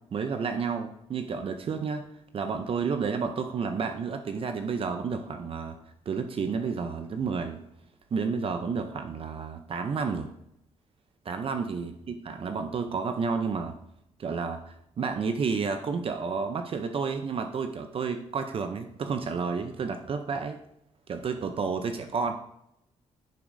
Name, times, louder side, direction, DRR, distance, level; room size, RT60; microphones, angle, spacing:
voice 1, 0.1-2.1 2.3-5.8 6.1-7.6 8.1-10.3 11.3-11.9 12.3-13.8 14.2-20.6 21.1-22.3, right 5 dB, 50° right, 7 dB, 0.6 m, -31 dB
10.0 x 6.0 x 2.6 m, 0.80 s
cardioid pair, 85°, 12 cm